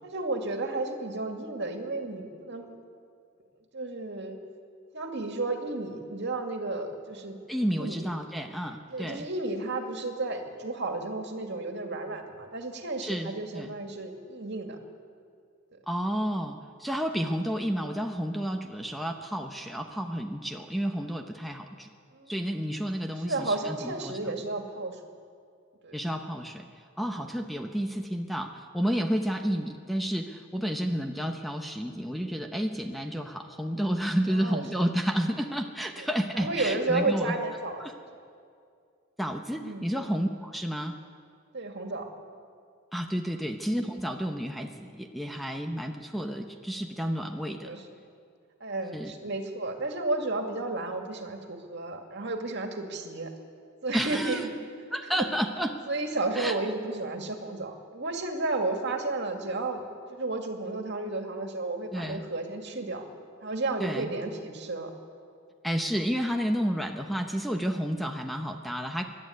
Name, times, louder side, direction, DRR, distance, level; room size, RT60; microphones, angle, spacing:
voice 1, 0.0-2.8 3.7-4.4 4.9-7.4 7.7-8.0 8.9-14.8 22.1-22.3 23.2-25.0 25.8-26.0 27.1-27.2 31.1-31.2 34.3-34.9 36.0-36.1 36.3-37.8 39.6-39.9 41.5-42.1 43.3-43.4 47.5-48.0 48.6-53.3 53.8-54.4 54.8-55.3 55.9-59.8 60.1-63.0 63.4-64.9, right 2 dB, 55° right, 4 dB, 2.2 m, -32 dB
voice 2, 7.5-9.3 13.0-13.7 15.9-21.9 22.3-24.2 25.9-26.7 27.0-37.4 37.8-37.9 39.2-40.9 42.9-47.7 48.9-49.1 53.9-54.4 54.9-55.7 56.3-56.5 61.9-62.2 63.8-64.1 65.6-69.0, equal, ahead, 4 dB, 0.9 m, -31 dB
25.0 x 11.5 x 9.7 m, 2.3 s
head